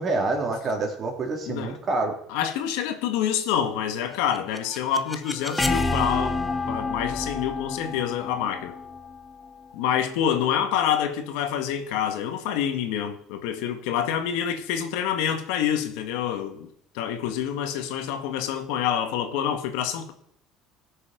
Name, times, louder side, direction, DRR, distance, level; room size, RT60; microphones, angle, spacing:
voice 1, 0.0-2.1, right 3 dB, 40° right, 3.5 m, -27 dB
voice 2, 1.5-1.8 2.3-6.4 6.7-8.8 9.7-16.7 16.9-20.1, left 9 dB, 85° left, 1.7 m, -27 dB
sound 1, 4.1-10.0, left 3 dB, 10° left, 1.1 m, -29 dB
17.0 x 6.9 x 5.2 m
supercardioid pair, 105°, 0 cm